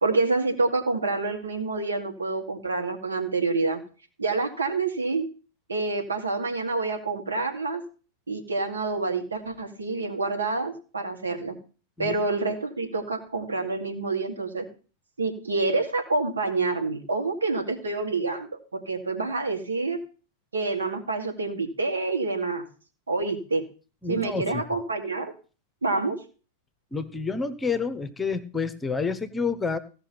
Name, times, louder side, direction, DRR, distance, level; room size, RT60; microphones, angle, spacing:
voice 1, 0.0-3.8 4.2-5.2 5.7-7.8 8.3-11.5 12.0-14.6 15.2-20.0 20.5-22.6 23.1-23.6 24.1-25.3 25.8-26.2, right 3 dB, 75° right, 2 dB, 2.5 m, -27 dB
voice 2, 24.0-24.6 26.9-29.8, left 4 dB, 10° left, 11 dB, 1.0 m, -29 dB
16.0 x 5.9 x 5.8 m, 0.37 s
figure-of-eight pair, 90°, 0 cm